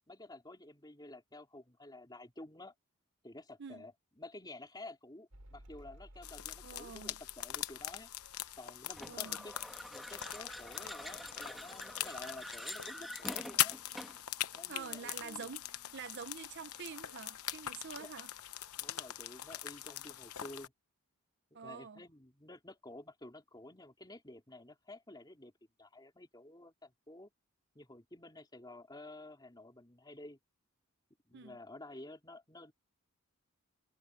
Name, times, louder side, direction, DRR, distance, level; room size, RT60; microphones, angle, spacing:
voice 1, 0.1-2.7 3.2-8.1 8.5-9.6 9.9-13.8 14.5-15.5 17.9-18.1 18.7-20.7 21.5-25.5 25.8-27.3 27.8-30.4 31.3-32.7, left 2 dB, 20° left, 3.7 m, -51 dB
Mechanical fan, 5.3-12.2 12.4-13.2, right 1 dB, 85° right, 4.8 m, -60 dB
sound 1, 6.2-20.7, left 12 dB, 75° left, 0.9 m, -41 dB
voice 2, 6.6-7.2 9.1-9.4 14.7-18.3 21.5-22.0 31.3-31.6, right 6 dB, 50° right, 0.7 m, -47 dB
sound 2, 8.9-14.3, equal, ahead, 2.1 m, -47 dB
head